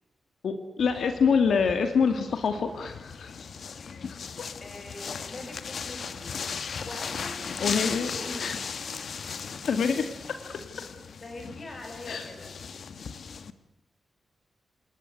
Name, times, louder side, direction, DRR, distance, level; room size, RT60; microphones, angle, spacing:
voice 1, 0.4-3.3 4.4-4.5 7.6-8.1 8.4-8.5 9.7-10.6 12.1-12.2, left 5 dB, 80° left, 7 dB, 2.3 m, -26 dB
sound 1, 0.8-13.5, left 6 dB, 60° left, 1.4 m, -37 dB
voice 2, 4.6-6.5 6.8-8.6 11.2-12.6, left 2 dB, 35° left, 4 dB, 7.1 m, -43 dB
28.5 x 19.5 x 9.4 m, 0.82 s
wide cardioid pair, 170°, 0 cm